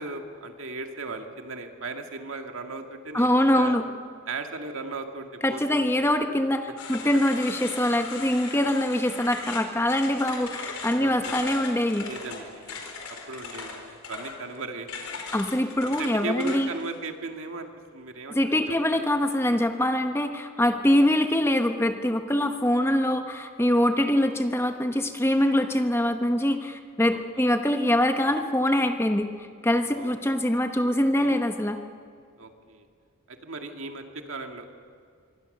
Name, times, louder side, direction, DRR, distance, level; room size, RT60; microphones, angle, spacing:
voice 1, 0.0-3.8 4.3-6.1 7.1-7.2 11.0-11.3 12.0-12.9 13.3-15.2 16.0-19.0 27.1-27.5 29.9-30.2 31.2-31.4 32.4-32.9 33.3-34.8, right 3 dB, 65° right, 4 dB, 2.1 m, -37 dB
voice 2, 3.1-3.8 5.4-12.1 15.3-16.7 18.3-29.3 29.6-31.8, left 1 dB, 10° left, 6 dB, 1.0 m, -24 dB
sound 1, 6.8-16.9, left 5 dB, 75° left, 4.6 m, -38 dB
26.0 x 23.0 x 6.7 m, 2.3 s
head